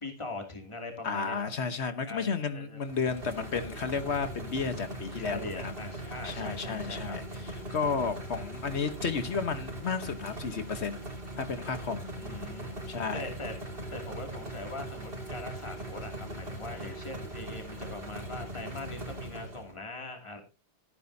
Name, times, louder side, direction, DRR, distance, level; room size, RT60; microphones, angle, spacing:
voice 1, 0.0-1.5 2.0-2.8 5.2-7.2 12.2-12.8 13.1-13.5 13.9-20.4, left 2 dB, 25° left, 2.7 m, -41 dB
voice 2, 1.0-5.7 6.2-11.0 11.4-12.1 12.9-13.3, left 5 dB, 70° left, 1.4 m, -32 dB
sound 1, 2.9-19.7, right 1 dB, 55° right, 4.0 m, -40 dB
16.0 x 9.7 x 2.7 m
omnidirectional pair, 1.2 m